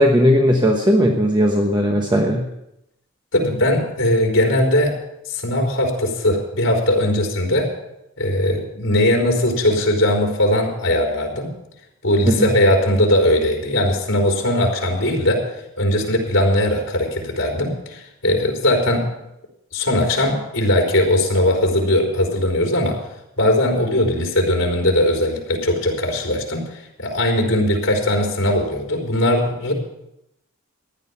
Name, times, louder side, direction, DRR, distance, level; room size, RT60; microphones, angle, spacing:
voice 1, 0.0-2.5 12.3-12.5, equal, 20° right, 2 dB, 1.0 m, -17 dB
voice 2, 3.3-4.9 5.3-7.7 8.2-11.5 12.0-15.4 15.8-19.1 19.7-23.0 23.4-29.7, left 1 dB, 65° left, 0 dB, 3.9 m, -19 dB
15.0 x 10.5 x 5.7 m, 0.84 s
head